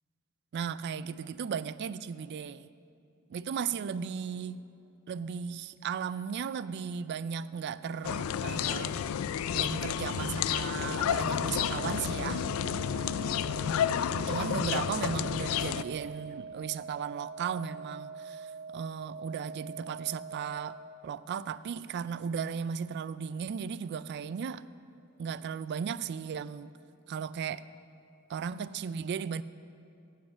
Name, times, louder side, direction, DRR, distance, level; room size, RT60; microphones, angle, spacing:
voice 1, 0.5-2.7 3.3-4.6 5.1-9.0 9.5-12.4 14.1-20.8 21.0-24.6 25.2-26.7 27.1-27.6 28.3-29.4, right 7 dB, 55° right, 17 dB, 0.3 m, -36 dB
sound 1, 8.0-15.8, left 8 dB, 80° left, 0.3 m, -31 dB
sound 2, 10.8-20.8, right 4 dB, 85° right, 1.9 m, -44 dB
10.0 x 7.5 x 7.0 m, 2.6 s
head